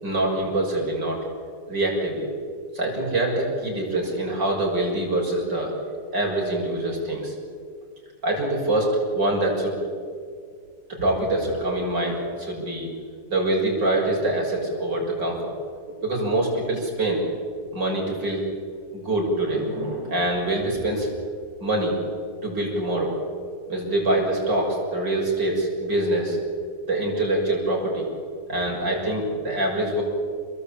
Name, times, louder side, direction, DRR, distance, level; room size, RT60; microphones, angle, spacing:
voice 1, 0.0-1.2 1.7-2.3 2.7-5.7 6.1-7.3 8.2-9.7 10.9-12.9 13.3-15.6 16.0-17.2 17.7-18.5 18.9-21.1 21.6-22.0 22.4-23.2 23.7-26.4 26.9-28.1 28.5-30.0, right 1 dB, 85° right, -1 dB, 7.4 m, -24 dB
29.5 x 22.0 x 8.7 m, 2.1 s
omnidirectional pair, 1.9 m